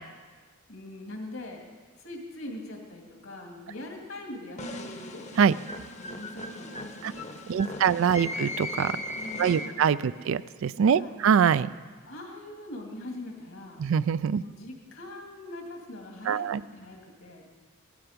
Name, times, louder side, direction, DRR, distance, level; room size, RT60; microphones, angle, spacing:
voice 1, 0.7-1.6 2.0-5.2 6.0-8.0 9.2-10.2 10.9-11.2 12.0-13.8 14.4-16.5 16.7-17.5, left 1 dB, 70° left, 1 dB, 2.6 m, -42 dB
sound 1, 4.6-10.0, left 1 dB, 35° left, 1.0 m, -38 dB
voice 2, 7.5-9.0 9.4-11.7 13.8-14.4 16.3-16.6, right 7 dB, 65° right, 16 dB, 0.3 m, -24 dB
16.0 x 12.5 x 5.2 m, 1.5 s
head